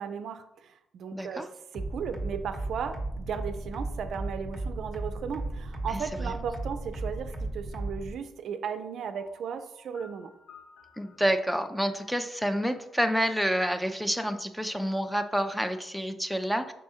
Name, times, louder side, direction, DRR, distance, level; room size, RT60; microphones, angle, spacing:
voice 1, 0.0-1.4 1.7-10.3, right 7 dB, 65° right, 9 dB, 0.4 m, -36 dB
voice 2, 1.1-1.5 5.9-6.3 11.0-16.7, equal, ahead, 8 dB, 0.4 m, -28 dB
sound 1, 1.7-8.1, right 2 dB, 20° left, 1.1 m, -34 dB
Piano, 9.2-14.0, left 4 dB, 75° left, 1.1 m, -56 dB
5.4 x 3.4 x 2.7 m, 0.83 s
cardioid pair, 90°, 0 cm